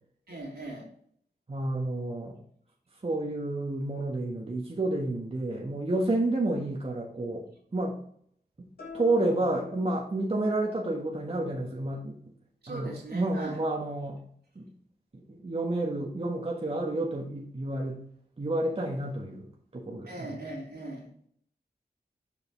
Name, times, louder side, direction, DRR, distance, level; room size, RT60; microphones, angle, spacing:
voice 1, 0.3-0.9 12.6-13.6 20.0-21.1, right 2 dB, 75° right, -3 dB, 3.0 m, -40 dB
voice 2, 1.5-2.4 3.0-7.5 7.7-8.0 8.6-8.7 8.9-12.2 12.7-14.2 14.5-14.7 15.1-18.0 18.4-20.3, right 2 dB, 35° right, -1 dB, 1.3 m, -30 dB
sound 1, 8.8-10.6, left 4 dB, 85° left, 3.4 m, -46 dB
7.3 x 5.2 x 3.9 m, 0.63 s
wide cardioid pair, 65°, 17 cm